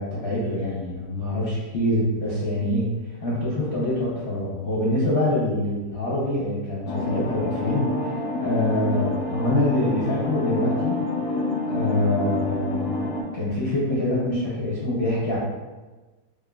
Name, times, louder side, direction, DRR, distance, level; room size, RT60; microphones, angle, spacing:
voice 1, 0.0-2.9 3.2-11.0 11.7-13.0 13.3-15.4, left 1 dB, 55° left, -8 dB, 0.7 m, -25 dB
sound 1, 6.9-13.2, left 2 dB, 90° left, 1.3 m, -28 dB
3.6 x 3.3 x 2.2 m, 1.2 s
omnidirectional pair, 2.0 m